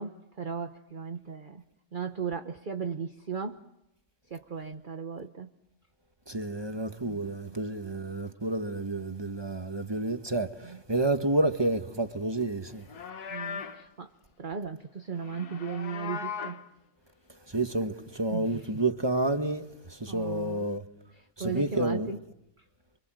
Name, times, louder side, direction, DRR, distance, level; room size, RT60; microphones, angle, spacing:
voice 1, 0.0-1.6 1.9-3.6 4.3-5.5 10.6-10.8 13.3-14.1 14.4-16.6 18.3-18.8 20.1-20.8 21.2-22.2, right 6 dB, 35° right, 1.2 m, -37 dB
voice 2, 6.3-12.8 17.5-20.8 21.4-22.1, right 2 dB, 15° right, 1.3 m, -30 dB
Livestock farm animals working animals, 12.7-13.9 15.2-16.7, left 6 dB, 75° left, 1.8 m, -38 dB
29.0 x 25.5 x 7.7 m
omnidirectional pair, 1.7 m